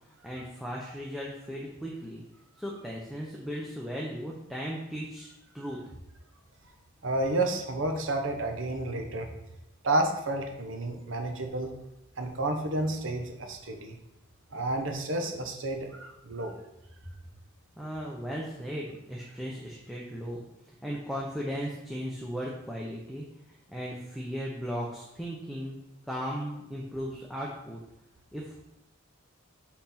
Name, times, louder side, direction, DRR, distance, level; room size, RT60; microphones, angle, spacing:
voice 1, 0.1-2.2 2.6-5.8 17.8-20.4 20.8-25.8 26.1-27.8 28.3-28.5, equal, ahead, -4 dB, 0.7 m, -37 dB
voice 2, 7.0-9.3 9.8-11.7 12.2-14.0 14.5-16.6, right 2 dB, 70° right, 4 dB, 1.0 m, -30 dB
5.7 x 4.4 x 4.3 m, 0.91 s
head